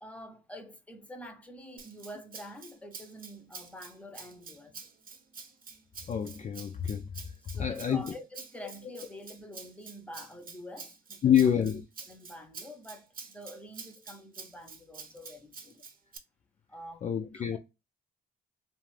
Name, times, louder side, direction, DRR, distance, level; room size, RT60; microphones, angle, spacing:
voice 1, 0.0-4.9 7.5-11.5 12.1-15.8 16.7-17.0 17.3-17.6, equal, 5° left, 0.7 m, -47 dB
Rattle (instrument), 1.8-16.2, right 5 dB, 45° right, 0.8 m, -48 dB
voice 2, 6.1-7.0 7.6-8.1 11.2-11.8 17.0-17.6, left 9 dB, 35° left, 0.4 m, -27 dB
2.5 x 2.4 x 3.1 m
cardioid pair, 90°, 20 cm